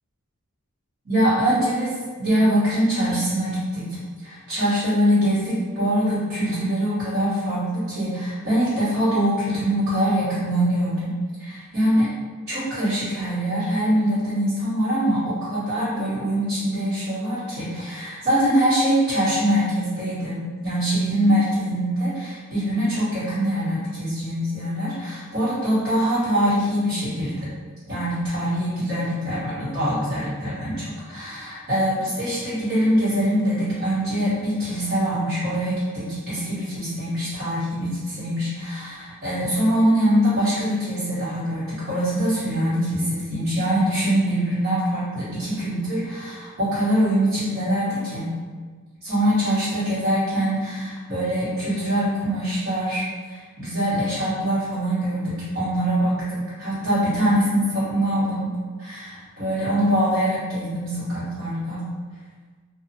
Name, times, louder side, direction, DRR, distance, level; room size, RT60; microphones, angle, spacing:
voice 1, 1.0-4.0 4.2-12.1 12.5-27.5 27.9-48.3 49.0-58.5 58.8-61.8, equal, 50° right, -16 dB, 1.3 m, -23 dB
2.8 x 2.4 x 2.7 m, 1.5 s
head